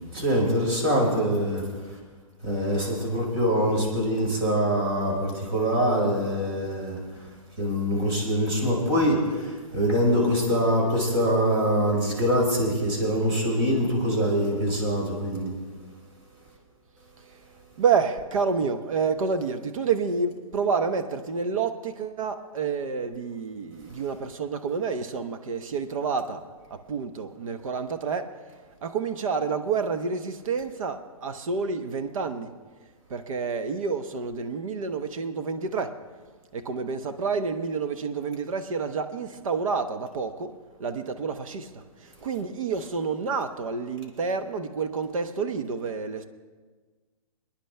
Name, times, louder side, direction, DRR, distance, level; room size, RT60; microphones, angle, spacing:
voice 1, 0.1-1.7 2.4-7.2 7.6-15.5 23.9-24.0, equal, 45° right, 5.1 m, -24 dB
voice 2, 17.8-26.4 26.9-28.2 28.8-31.0 31.2-32.5 33.1-35.9 36.7-40.5 40.8-41.6 42.2-46.2, right 5 dB, 70° right, 1.1 m, -28 dB
24.0 x 10.0 x 3.4 m
hypercardioid pair, 140°, 18 cm